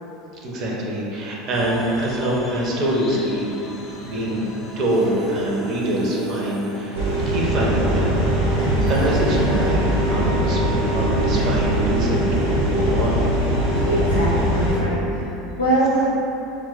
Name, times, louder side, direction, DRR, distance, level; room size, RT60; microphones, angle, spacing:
voice 1, 0.4-3.5 4.0-4.5 4.8-8.2 8.5-13.2, right 1 dB, 45° right, -3 dB, 0.5 m, -24 dB
sound 1, 1.5-9.7, equal, 35° left, 0.5 m, -36 dB
sound 2, 6.9-14.8, right 1 dB, 90° right, 0.7 m, -21 dB
voice 2, 13.9-16.1, right 1 dB, 90° left, -8 dB, 0.4 m, -23 dB
2.2 x 2.1 x 3.8 m, 3.0 s
figure-of-eight pair, 70°, 0 cm